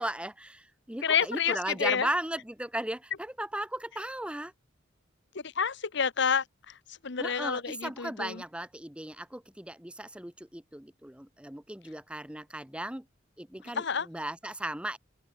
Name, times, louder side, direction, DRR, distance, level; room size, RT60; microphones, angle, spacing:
voice 1, 0.0-4.5 7.2-13.1 13.4-15.0, right 1 dB, 5° right, 1.0 m, -36 dB
voice 2, 1.0-2.1 5.3-8.4 13.7-14.1, left 6 dB, 65° left, 1.1 m, -29 dB
open air
head